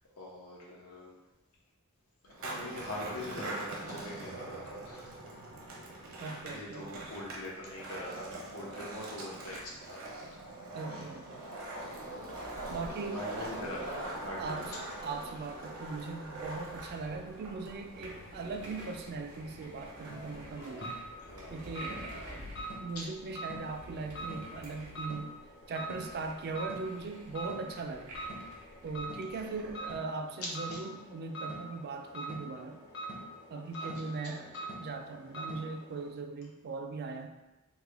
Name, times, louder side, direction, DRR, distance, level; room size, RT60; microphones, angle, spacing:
voice 1, 0.2-1.1 2.2-5.2 6.5-10.0 10.3-10.4 13.1-15.0 21.2-22.0 22.9-23.0 29.4-29.7 30.4-30.8 33.8-34.7, left 1 dB, 90° left, -3 dB, 0.9 m, -43 dB
Skateboard, 2.3-20.9, right 2 dB, 70° right, 0.7 m, -43 dB
voice 2, 6.2-7.1 10.7-11.2 12.7-13.6 14.4-14.7 15.0-20.9 21.5-22.5 22.8-25.4 25.7-28.1 28.8-32.8 33.5-34.5 34.8-37.3, right 4 dB, 50° right, 5 dB, 0.3 m, -39 dB
sound 1, 12.4-30.0, equal, 90° right, 1.2 m, -51 dB
sound 2, 17.1-36.1, right 1 dB, 55° left, 0.8 m, -45 dB
3.5 x 2.1 x 3.3 m, 1.0 s
head